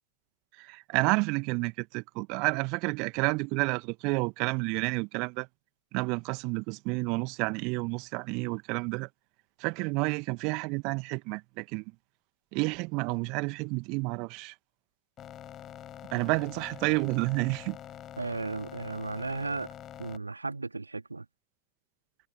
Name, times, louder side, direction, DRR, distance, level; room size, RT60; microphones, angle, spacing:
voice 1, 0.6-5.5 5.9-9.1 9.6-11.8 12.5-14.5 16.1-17.8, right 29 dB, 45° right, 1.8 m, -30 dB
sound 1, 15.2-20.2, left 11 dB, 30° left, 6.1 m, -45 dB
voice 2, 18.2-19.7 20.0-21.3, right 3 dB, 80° right, 2.5 m, -35 dB
figure-of-eight pair, 90°, 0 cm